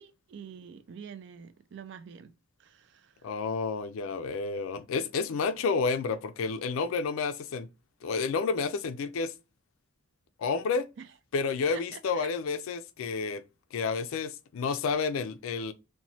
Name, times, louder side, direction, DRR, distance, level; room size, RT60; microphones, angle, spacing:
voice 1, 0.0-2.3 2.6-3.3 11.0-11.1 11.7-12.3 13.1-13.3, right 7 dB, 55° right, 0.3 m, -47 dB
voice 2, 3.2-7.7 8.0-9.3 10.4-10.9 11.3-13.4 13.7-15.7, left 4 dB, 80° left, 0.3 m, -30 dB
3.0 x 2.2 x 2.6 m
head